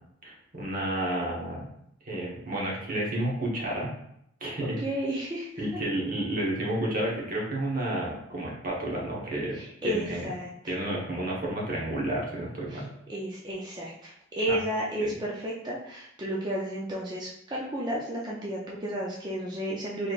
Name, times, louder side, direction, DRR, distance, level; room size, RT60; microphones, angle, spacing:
voice 1, 0.2-1.7 2.0-3.9 4.4-4.8 5.6-10.3 10.7-12.9 14.5-14.6 15.0-15.1, right 1 dB, 40° right, -4 dB, 1.0 m, -31 dB
voice 2, 4.6-5.8 9.5-10.7 12.7-20.1, right 1 dB, 20° right, -4 dB, 0.5 m, -33 dB
4.1 x 3.2 x 2.4 m, 0.75 s
head